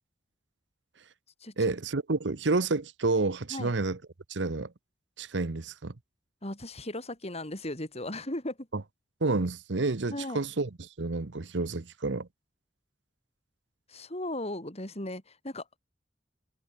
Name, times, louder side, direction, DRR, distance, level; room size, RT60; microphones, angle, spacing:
voice 1, 1.6-4.0 4.3-4.7 5.2-5.9 8.7-8.8 9.2-12.3, right 3 dB, 80° right, 1.0 m, -29 dB
voice 2, 6.4-8.6 10.1-10.4 13.9-15.6, left 1 dB, 35° left, 6.3 m, -36 dB
head